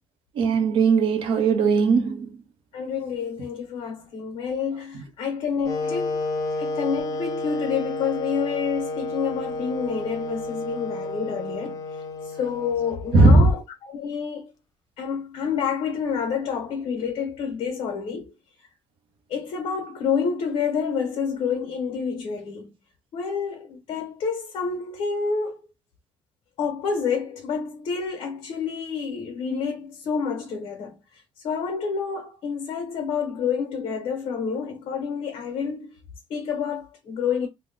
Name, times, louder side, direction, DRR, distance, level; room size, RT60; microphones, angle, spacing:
voice 1, 0.3-2.4 13.1-13.5, right 3 dB, 60° right, 1.0 m, -18 dB
voice 2, 2.7-6.2 6.6-14.5 15.0-18.3 18.6-18.7 19.3-22.7 23.1-25.6 26.6-36.0 36.3-37.5, left 6 dB, 65° left, 1.2 m, -28 dB
Wind instrument woodwind instrument, 5.6-13.6, left 2 dB, 35° left, 0.5 m, -31 dB
3.1 x 2.3 x 3.9 m
cardioid pair, 180°, 10 cm